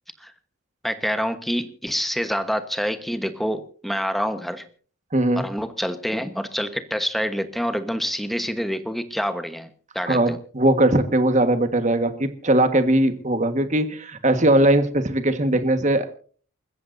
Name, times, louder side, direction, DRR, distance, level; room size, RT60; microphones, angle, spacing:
voice 1, 0.8-4.6 5.4-9.7 9.9-10.4, equal, ahead, 9 dB, 1.2 m, -27 dB
voice 2, 5.1-5.4 10.0-16.2, right 1 dB, 35° right, 9 dB, 1.5 m, -20 dB
29.0 x 14.5 x 2.7 m, 0.43 s
head